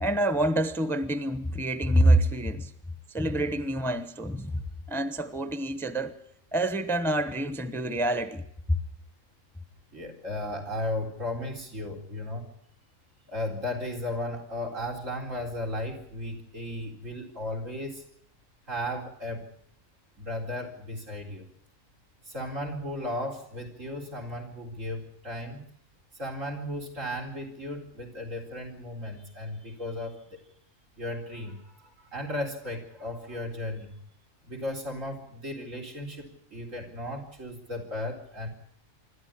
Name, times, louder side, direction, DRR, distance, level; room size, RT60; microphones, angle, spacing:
voice 1, 0.0-2.7 3.1-4.6 4.9-6.2 6.5-8.8, right 1 dB, ahead, 0.9 m, -26 dB
voice 2, 9.9-12.5 13.3-18.0 18.7-19.5 20.2-21.4 22.2-25.6 26.1-30.4 31.0-33.9 34.4-38.5, left 1 dB, 75° right, 4.6 m, -35 dB
26.0 x 13.0 x 9.9 m
omnidirectional pair, 1.3 m